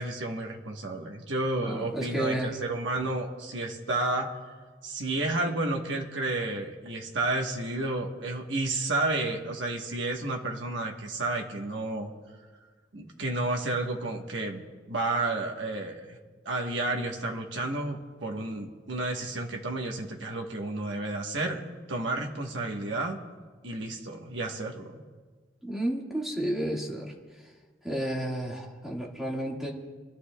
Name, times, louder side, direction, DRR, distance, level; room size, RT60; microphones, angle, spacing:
voice 1, 0.0-4.3 4.8-12.1 12.9-16.2 16.4-23.2 23.6-25.0, right 2 dB, 75° right, 1 dB, 1.2 m, -31 dB
voice 2, 1.6-2.5 25.6-27.1 27.8-29.7, right 1 dB, ahead, -3 dB, 1.8 m, -31 dB
28.0 x 12.0 x 2.3 m, 1.4 s
head